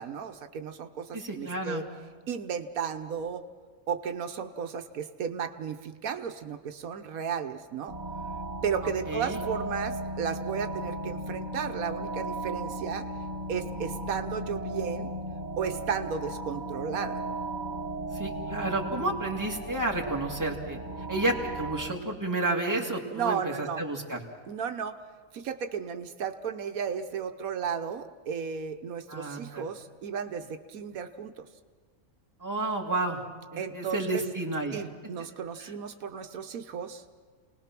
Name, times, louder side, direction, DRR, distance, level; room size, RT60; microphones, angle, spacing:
voice 1, 0.0-1.8 2.3-3.4 3.9-7.9 8.6-13.1 13.5-15.1 15.6-17.2 23.1-23.8 24.5-25.0 25.3-31.5 33.6-34.2 34.7-37.0, right 7 dB, 85° right, 7 dB, 1.4 m, -34 dB
voice 2, 1.1-1.8 8.8-9.4 18.1-20.8 21.1-24.2 29.1-29.7 32.4-33.2 33.5-34.8 35.6-35.7, right 2 dB, 15° right, 0 dB, 2.1 m, -31 dB
sound 1, 7.9-21.9, right 2 dB, 30° right, 2.0 m, -36 dB
29.0 x 19.0 x 6.0 m, 1.5 s
omnidirectional pair, 1.4 m